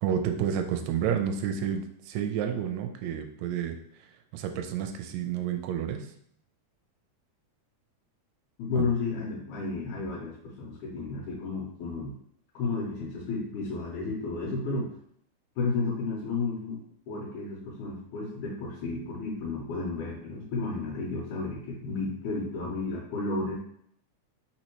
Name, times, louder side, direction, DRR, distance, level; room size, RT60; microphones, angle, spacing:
voice 1, 0.0-3.8 4.3-6.1 8.8-8.9, right 8 dB, 80° right, 6 dB, 1.8 m, -30 dB
voice 2, 8.6-12.1 12.5-14.9 15.6-16.8 17.1-23.6, left 3 dB, 90° left, -4 dB, 2.4 m, -32 dB
4.3 x 4.2 x 3.0 m, 0.67 s
omnidirectional pair, 3.4 m